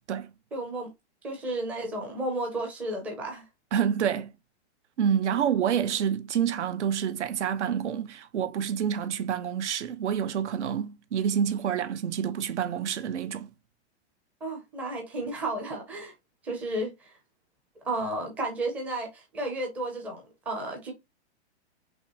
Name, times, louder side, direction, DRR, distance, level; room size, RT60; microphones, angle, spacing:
voice 1, 0.5-0.9 1.2-3.4 14.4-16.1 16.4-16.9 17.8-20.9, right 1 dB, 5° right, 0.5 m, -32 dB
voice 2, 3.7-4.3 5.0-13.5, right 8 dB, 85° right, 1.1 m, -28 dB
5.4 x 3.1 x 2.8 m
supercardioid pair, 170°, 34 cm